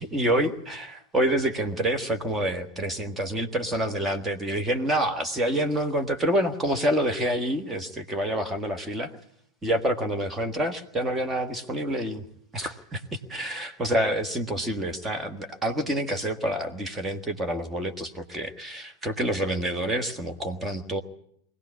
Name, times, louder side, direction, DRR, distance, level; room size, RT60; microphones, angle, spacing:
voice 1, 0.0-9.1 9.6-12.2 12.5-21.0, right 1 dB, 10° right, 5 dB, 1.7 m, -27 dB
23.0 x 17.0 x 9.7 m, 0.70 s
figure-of-eight pair, 90°, 0 cm